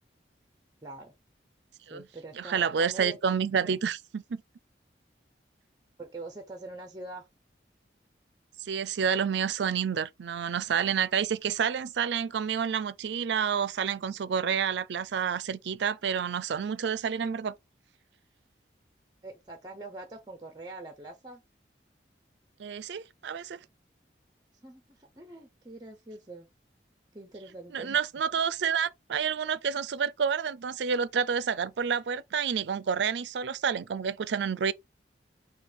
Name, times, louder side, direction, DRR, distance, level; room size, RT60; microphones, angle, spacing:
voice 1, 0.8-1.1 1.9-3.2 3.7-3.8 6.0-7.3 19.2-21.4 24.6-26.5 27.1-28.0, right 2 dB, 25° right, 0.7 m, -44 dB
voice 2, 2.3-4.4 8.6-17.5 22.6-23.6 27.7-34.7, right 7 dB, 75° right, 0.4 m, -29 dB
4.6 x 2.4 x 4.9 m
head